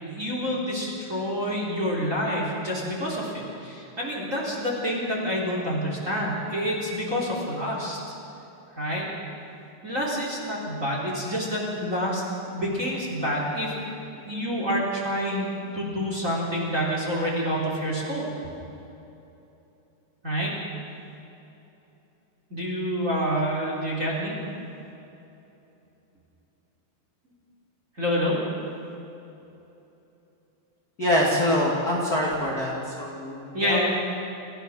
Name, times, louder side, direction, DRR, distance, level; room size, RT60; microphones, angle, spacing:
voice 1, 0.0-8.0 8.8-9.1 9.8-15.5 15.7-18.2 20.2-20.5 22.5-24.3 28.0-28.4 33.5-33.9, equal, 20° right, -3 dB, 3.0 m, -28 dB
voice 2, 31.0-32.7 33.0-33.9, left 1 dB, 35° left, -4 dB, 1.6 m, -24 dB
28.5 x 14.5 x 6.3 m, 2.9 s
omnidirectional pair, 5.7 m